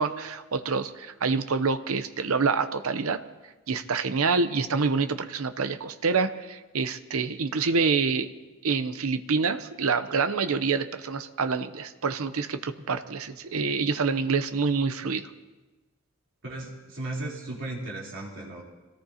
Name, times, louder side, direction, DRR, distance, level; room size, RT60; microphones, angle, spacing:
voice 1, 0.0-3.2 3.7-8.3 8.6-15.3, right 4 dB, 80° right, 10 dB, 0.7 m, -27 dB
voice 2, 16.4-18.6, right 2 dB, 60° right, -3 dB, 3.5 m, -36 dB
25.5 x 18.0 x 2.9 m, 1.2 s
head